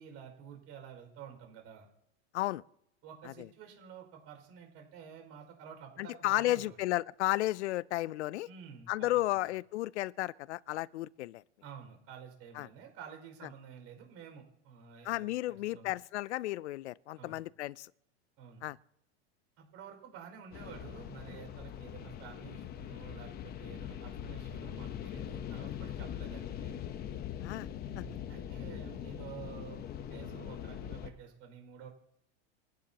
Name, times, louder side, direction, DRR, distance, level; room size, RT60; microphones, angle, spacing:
voice 1, 0.0-1.9 3.0-6.8 8.5-9.5 11.6-15.9 17.2-17.4 18.4-18.7 19.6-26.8 27.8-29.8 30.1-31.9, right 7 dB, 45° right, 5.5 m, -50 dB
voice 2, 6.0-8.5 8.9-11.4 12.6-12.7 15.0-17.9 18.6-18.8 27.4-27.7 28.0-28.1, left 16 dB, 90° left, 0.5 m, -33 dB
sound 1, 20.5-31.1, left 10 dB, 30° left, 0.9 m, -42 dB
28.5 x 10.5 x 2.9 m
supercardioid pair, 140°, 34 cm